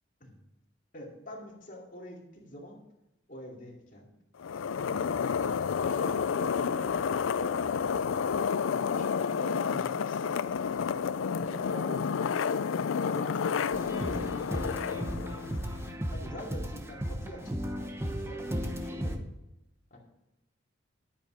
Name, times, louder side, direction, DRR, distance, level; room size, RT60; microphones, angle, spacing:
voice 1, 0.9-2.8 3.3-4.1 5.8-6.9 7.3-7.8 8.3-10.3 11.1-15.4 15.8-19.2 19.9-20.0, equal, 40° left, -1 dB, 2.6 m, -45 dB
sound 1, 4.4-15.9, left 6 dB, 85° left, 0.4 m, -30 dB
sound 2, 13.7-19.2, equal, 15° right, 0.9 m, -35 dB
10.5 x 9.2 x 5.0 m, 0.91 s
head